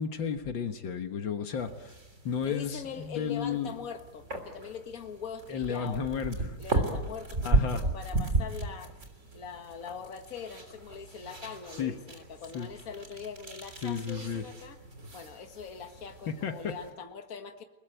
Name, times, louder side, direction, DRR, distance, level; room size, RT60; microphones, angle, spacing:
voice 1, 0.0-1.9 2.2-3.7 5.5-6.6 7.4-7.8 11.8-11.9 12.5-12.7 13.8-14.4 16.3-16.7, left 6 dB, 75° left, 6 dB, 2.1 m, -33 dB
sound 1, 1.6-16.9, right 2 dB, 35° right, 3.8 m, -35 dB
voice 2, 2.4-6.1 6.6-8.9 9.3-14.8 15.1-17.6, left 6 dB, 45° left, 6 dB, 2.0 m, -42 dB
30.0 x 20.0 x 9.1 m, 1.1 s
omnidirectional pair, 2.1 m